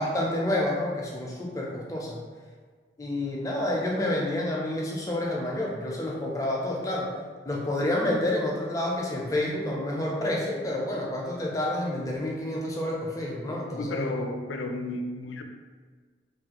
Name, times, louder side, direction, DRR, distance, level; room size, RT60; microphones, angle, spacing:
voice 1, 0.0-2.2 3.0-7.1 7.4-14.1, left 1 dB, 20° left, -3 dB, 0.4 m, -29 dB
voice 2, 13.8-15.4, left 2 dB, 85° left, 4 dB, 0.4 m, -32 dB
3.3 x 2.3 x 2.8 m, 1.5 s
head